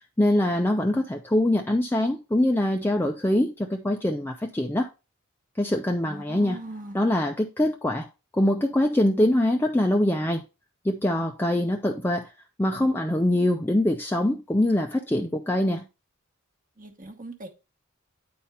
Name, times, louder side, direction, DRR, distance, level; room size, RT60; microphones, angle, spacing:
voice 1, 0.2-4.9 5.6-6.6 6.9-8.1 8.3-10.4 10.8-12.3 12.6-15.9, left 1 dB, 10° left, 0.5 m, -23 dB
voice 2, 6.0-7.0 16.8-17.5, right 2 dB, 40° right, 1.1 m, -40 dB
9.4 x 4.3 x 3.4 m
head